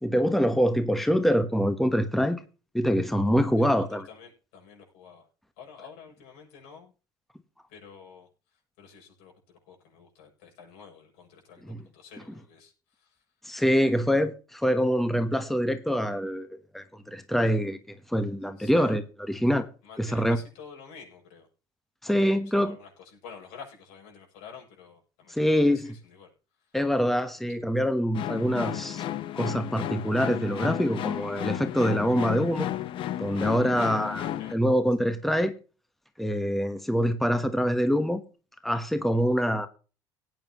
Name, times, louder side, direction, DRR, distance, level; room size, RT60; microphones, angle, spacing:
voice 1, 0.0-2.4 2.7-4.0 11.7-11.8 13.4-16.5 16.7-19.0 19.3-19.7 20.0-20.4 22.0-22.7 25.3-25.9 26.7-29.0 29.4-32.7 33.2-35.5 36.2-38.2 38.6-39.7, equal, ahead, 1.2 m, -25 dB
voice 2, 3.6-5.3 5.6-6.9 7.7-8.3 8.8-13.2 13.7-14.1 18.6-19.0 19.8-21.5 22.0-26.3 26.6-26.8 34.4-34.6, left 6 dB, 80° left, 7.5 m, -49 dB
sound 1, 28.1-34.5, left 12 dB, 55° left, 1.0 m, -33 dB
18.0 x 9.3 x 3.0 m
supercardioid pair, 100°, 10 cm